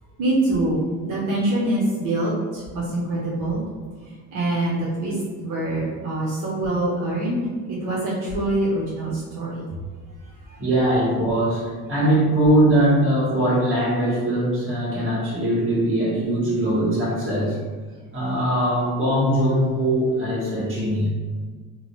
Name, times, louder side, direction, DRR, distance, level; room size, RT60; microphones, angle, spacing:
voice 1, 0.2-3.6 4.3-9.7 10.5-10.6, right 1 dB, 80° right, -6 dB, 0.9 m, -25 dB
voice 2, 10.6-17.6 18.1-21.1, right 1 dB, 40° right, -7 dB, 1.5 m, -21 dB
2.9 x 2.2 x 3.0 m, 1.5 s
cardioid pair, 105°, 32 cm